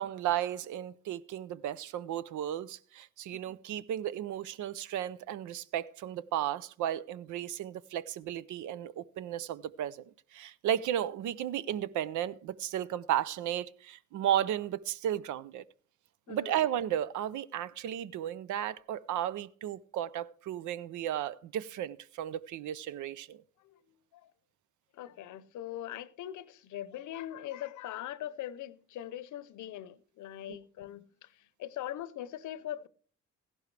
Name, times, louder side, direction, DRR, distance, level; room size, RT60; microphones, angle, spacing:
voice 1, 0.0-15.6 16.3-23.4 30.5-30.6, right 11 dB, 75° right, 0.6 m, -34 dB
voice 2, 23.6-24.3 24.9-32.9, left 12 dB, 75° left, 0.7 m, -42 dB
15.0 x 11.5 x 3.3 m
cardioid pair, 90°, 30 cm